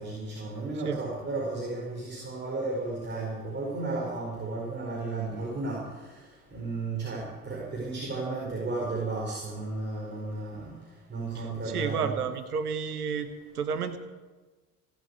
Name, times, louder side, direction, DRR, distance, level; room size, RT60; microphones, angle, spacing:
voice 1, 0.0-5.8 6.5-10.6 11.1-12.1, right 3 dB, 25° right, -4 dB, 4.8 m, -33 dB
voice 2, 11.7-13.3 13.5-14.0, right 6 dB, 80° right, 10 dB, 1.1 m, -30 dB
17.0 x 8.3 x 8.3 m, 1.3 s
figure-of-eight pair, 60°, 44 cm